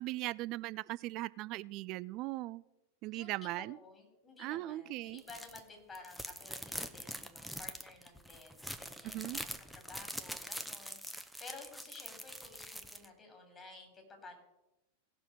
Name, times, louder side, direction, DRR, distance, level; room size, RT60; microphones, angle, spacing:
voice 1, 0.0-2.6 3.0-3.8 4.4-5.2 9.0-9.4, right 18 dB, 40° right, 20 dB, 0.4 m, -39 dB
voice 2, 3.1-14.3, left 3 dB, 20° left, 2 dB, 3.6 m, -53 dB
sound 1, 5.2-5.6 5.9-13.0, equal, ahead, 0.8 m, -44 dB
17.5 x 6.1 x 6.6 m, 0.94 s
figure-of-eight pair, 90°, 0 cm